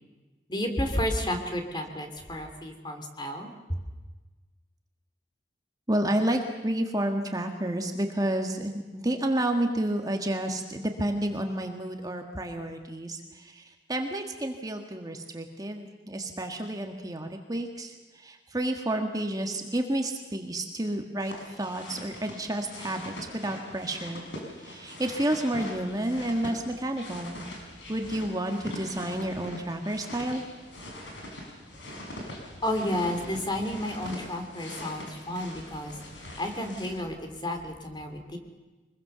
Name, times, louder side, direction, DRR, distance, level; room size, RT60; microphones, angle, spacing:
voice 1, 0.5-3.8 32.6-35.9 36.4-38.4, left 1 dB, 25° left, 5 dB, 3.0 m, -31 dB
voice 2, 5.9-24.3 24.6-27.4 27.9-30.4, right 1 dB, 20° right, 4 dB, 1.7 m, -30 dB
sound 1, 21.2-36.9, left 1 dB, 85° left, 5.7 m, -42 dB
24.5 x 21.5 x 6.9 m, 1.2 s
head